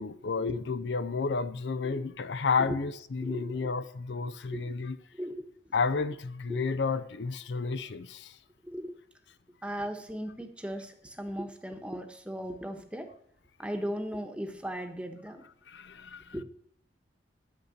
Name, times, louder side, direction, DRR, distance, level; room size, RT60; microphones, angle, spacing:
voice 1, 0.0-5.0 5.7-8.4 15.7-16.4, left 4 dB, 75° left, 0.5 m, -31 dB
voice 2, 3.2-3.7 4.5-4.6 5.2-5.4 6.5-6.6 8.6-8.9 9.6-13.1 13.6-15.4 16.3-16.4, equal, 5° right, 1.1 m, -37 dB
9.6 x 6.6 x 7.1 m
head